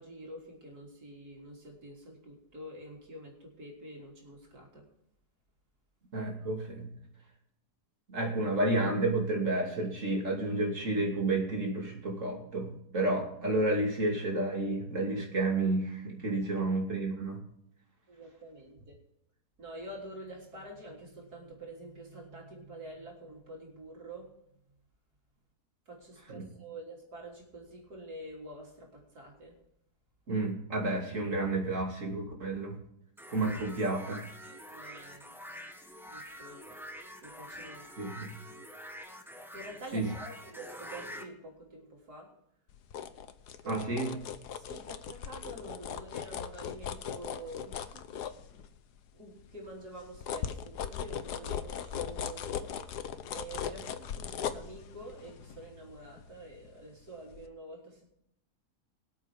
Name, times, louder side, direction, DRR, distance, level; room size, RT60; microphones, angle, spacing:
voice 1, 0.0-4.9 16.3-16.5 18.1-19.0 19.6-24.3 25.9-29.6 33.3-33.6 34.4-35.2 36.0-36.8 37.2-38.1 39.5-42.3 43.6-43.8 44.1-48.1 49.1-52.8 53.3-58.1, right 1 dB, 75° right, -1 dB, 4.0 m, -47 dB
voice 2, 6.1-6.9 8.1-17.4 26.3-26.4 30.3-32.8 33.3-34.2 38.0-38.3 39.9-40.1 43.7-44.1, right 2 dB, 50° right, 0 dB, 3.2 m, -31 dB
sound 1, 33.2-41.3, equal, ahead, 1.2 m, -46 dB
sound 2, 42.7-49.0 49.4-56.9 57.3-57.5, left 8 dB, 85° left, 1.5 m, -39 dB
23.5 x 8.2 x 3.6 m, 0.78 s
omnidirectional pair, 1.7 m